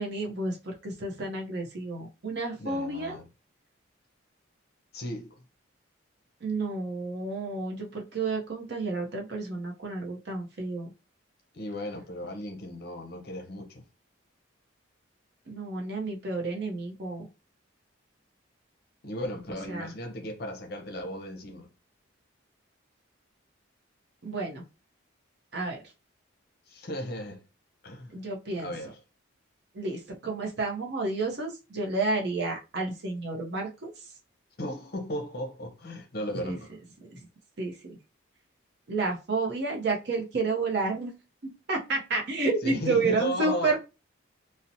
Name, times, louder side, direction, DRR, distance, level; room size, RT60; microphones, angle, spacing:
voice 1, 0.0-3.2 6.4-10.9 15.5-17.3 19.7-19.9 24.2-24.6 25.5-25.8 28.1-28.7 29.7-33.9 36.4-36.6 37.1-37.2 37.6-38.0 38.9-41.1 41.4-43.8, right 3 dB, 55° right, 0.6 m, -30 dB
voice 2, 2.6-3.2 4.9-5.4 11.5-13.8 19.0-21.7 26.7-27.4 27.8-28.2 28.6-29.0 34.6-36.7 42.6-43.8, left 1 dB, 50° left, 0.6 m, -36 dB
2.7 x 2.0 x 2.6 m
head